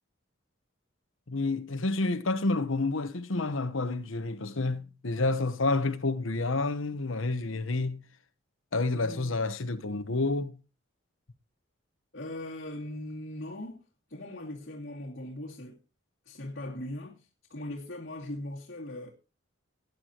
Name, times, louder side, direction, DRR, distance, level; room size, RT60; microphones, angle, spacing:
voice 1, 1.3-8.0 8.7-10.6, left 3 dB, 80° left, 1.0 m, -29 dB
voice 2, 8.9-9.5 12.1-13.8 14.1-15.8 16.3-19.1, left 1 dB, 55° left, 2.5 m, -40 dB
19.0 x 9.6 x 3.0 m
head